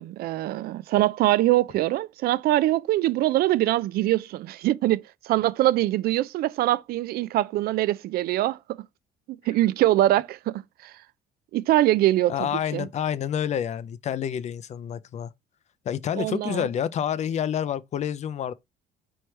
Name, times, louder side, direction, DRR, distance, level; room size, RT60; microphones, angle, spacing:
voice 1, 0.0-8.6 9.5-10.9 11.5-12.8 16.2-16.7, right 15 dB, 65° right, 0.4 m, -23 dB
voice 2, 12.3-15.3 15.9-18.5, left 9 dB, 45° left, 0.4 m, -28 dB
4.6 x 3.1 x 3.1 m
cardioid pair, 110°, 17 cm